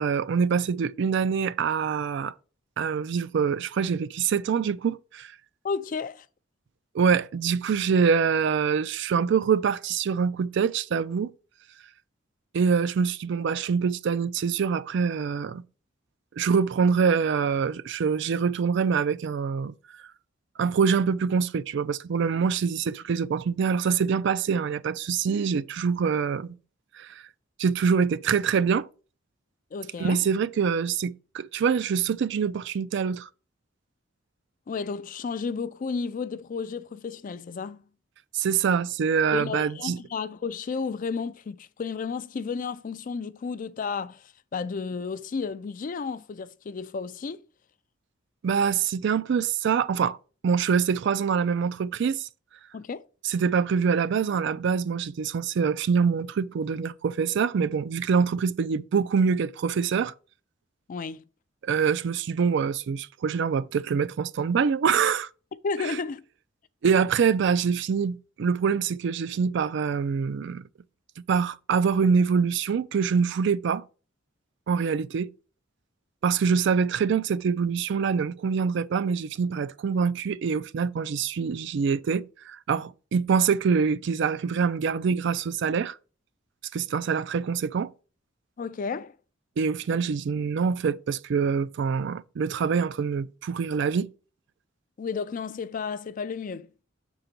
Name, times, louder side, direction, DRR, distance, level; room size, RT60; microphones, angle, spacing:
voice 1, 0.0-2.3 2.8-5.3 6.9-11.3 12.5-15.6 16.4-19.7 20.6-26.5 27.0-27.2 27.6-28.9 30.0-33.3 38.3-40.0 48.4-50.2 50.4-52.3 53.2-60.1 61.6-65.3 65.9-66.0 66.8-70.6 71.3-73.8 74.7-75.3 76.2-85.9 86.7-87.9 89.6-94.1, right 6 dB, 65° right, 0.4 m, -25 dB
voice 2, 5.6-6.3 29.7-30.3 34.7-37.8 39.3-47.4 52.7-53.0 60.9-61.2 65.6-66.2 88.6-89.1 95.0-96.7, left 5 dB, 45° left, 0.4 m, -32 dB
6.8 x 3.9 x 4.4 m
head